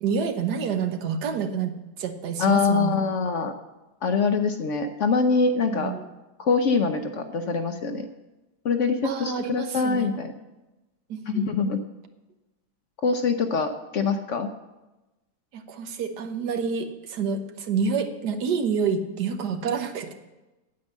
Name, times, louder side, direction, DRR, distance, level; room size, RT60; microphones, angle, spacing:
voice 1, 0.0-3.1 5.7-6.0 9.0-10.1 11.1-11.7 15.5-20.1, right 6 dB, 80° right, 7 dB, 1.5 m, -28 dB
voice 2, 2.4-3.5 4.0-5.9 6.4-8.1 8.6-10.3 11.3-11.8 13.0-14.5, left 5 dB, 60° left, 7 dB, 0.9 m, -24 dB
9.0 x 8.5 x 7.3 m, 1.0 s
omnidirectional pair, 1.8 m